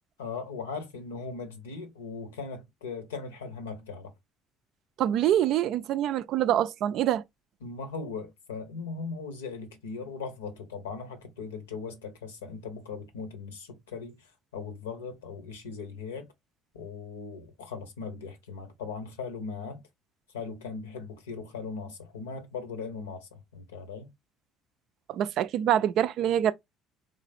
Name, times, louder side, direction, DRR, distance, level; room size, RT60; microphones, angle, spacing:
voice 1, 0.2-4.1 7.6-16.3 16.7-19.8 20.3-24.1, left 4 dB, 75° left, 0.8 m, -39 dB
voice 2, 5.0-7.2 25.1-26.5, right 11 dB, 55° right, 0.4 m, -25 dB
3.8 x 3.2 x 2.5 m
figure-of-eight pair, 55°, 0 cm